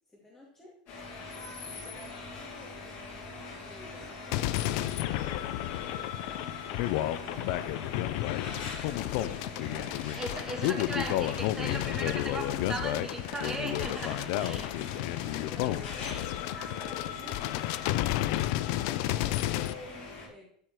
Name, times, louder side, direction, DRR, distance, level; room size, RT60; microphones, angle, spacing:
voice 1, 0.1-0.7 1.6-10.4 15.0-20.5, left 1 dB, 10° left, -4 dB, 2.4 m, -51 dB
sound 1, 0.9-20.3, left 3 dB, 45° left, 5.1 m, -43 dB
sound 2, 4.3-19.7, left 15 dB, 60° left, 0.6 m, -31 dB
voice 2, 10.1-14.7 15.8-15.9 16.5-16.8, right 2 dB, 10° right, 3 dB, 2.0 m, -38 dB
13.0 x 4.9 x 6.1 m, 0.65 s
supercardioid pair, 140°, 4 cm